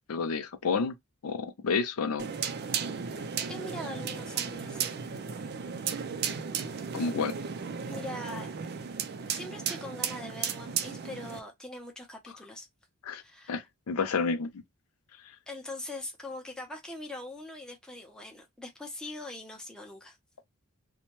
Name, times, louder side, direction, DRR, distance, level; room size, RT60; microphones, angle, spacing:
voice 1, 0.1-0.9 1.2-2.2 6.9-7.3 13.1-13.2 13.5-14.6, left 5 dB, 85° left, 0.5 m, -30 dB
sound 1, 2.2-11.4, right 7 dB, 45° right, 0.4 m, -35 dB
voice 2, 3.5-4.9 7.9-8.5 9.3-12.7 13.1-13.6 15.5-20.2, left 1 dB, 5° left, 0.6 m, -42 dB
2.7 x 2.1 x 2.9 m
head